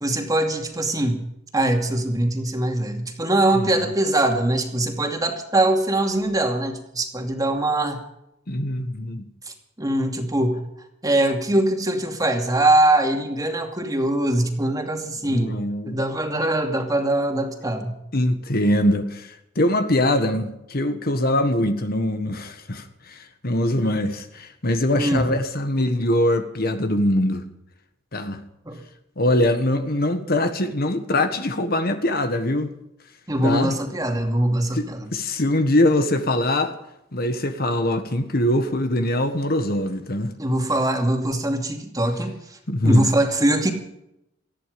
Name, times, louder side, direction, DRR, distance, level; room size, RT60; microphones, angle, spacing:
voice 1, 0.0-1.2 1.5-8.0 9.5-10.6 11.0-15.6 15.9-17.9 25.0-25.2 28.7-28.8 33.3-35.0 40.4-42.6 42.8-43.7, right 1 dB, 20° right, 2.5 m, -22 dB
voice 2, 3.6-3.9 8.5-9.2 15.3-16.0 18.1-27.4 28.1-28.4 29.2-32.7 33.4-33.8 34.7-36.7 37.1-40.3 42.7-43.1, left 1 dB, 50° left, 1.5 m, -23 dB
19.0 x 14.0 x 5.2 m
head